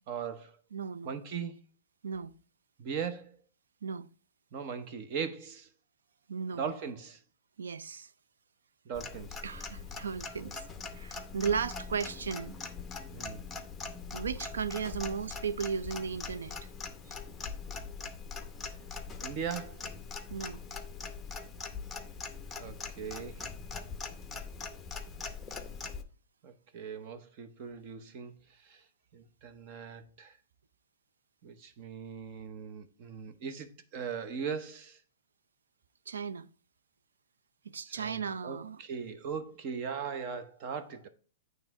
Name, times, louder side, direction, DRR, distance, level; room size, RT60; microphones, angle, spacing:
voice 1, 0.1-0.6 1.0-1.5 2.8-3.4 4.5-5.7 6.5-7.2 8.8-9.4 13.1-13.4 19.2-19.9 22.6-23.5 26.4-28.8 29.1-30.4 31.4-35.0 37.8-41.1, right 6 dB, 40° right, 0.9 m, -39 dB
voice 2, 0.7-1.1 2.0-2.4 3.8-4.1 6.3-6.7 7.6-8.1 9.4-10.6 10.9-12.6 14.1-16.7 20.3-20.7 36.1-36.5 37.6-38.8, right 6 dB, 90° right, 0.5 m, -35 dB
Clock, 8.9-26.0, left 5 dB, 10° left, 0.7 m, -42 dB
9.0 x 3.3 x 4.7 m
hypercardioid pair, 140°, 0 cm